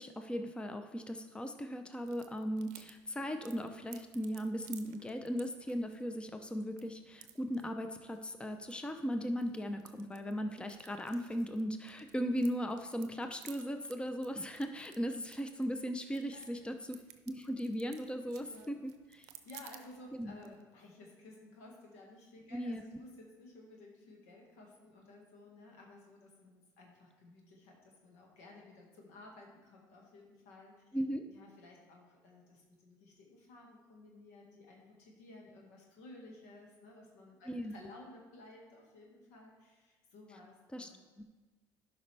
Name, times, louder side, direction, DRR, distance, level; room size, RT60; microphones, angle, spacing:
voice 1, 0.0-17.0 17.3-19.3 20.2-20.3 22.5-22.8 30.9-31.2 37.5-37.7 40.7-40.9 41.2-41.3, equal, 10° left, 6 dB, 0.7 m, -37 dB
sound 1, 2.0-20.6, right 12 dB, 90° right, 0.6 m, -58 dB
voice 2, 16.2-16.6 18.3-18.7 19.2-30.7 31.3-41.2, left 2 dB, 85° left, 0 dB, 1.7 m, -55 dB
11.5 x 5.3 x 3.4 m, 1.2 s
supercardioid pair, 80°, 9 cm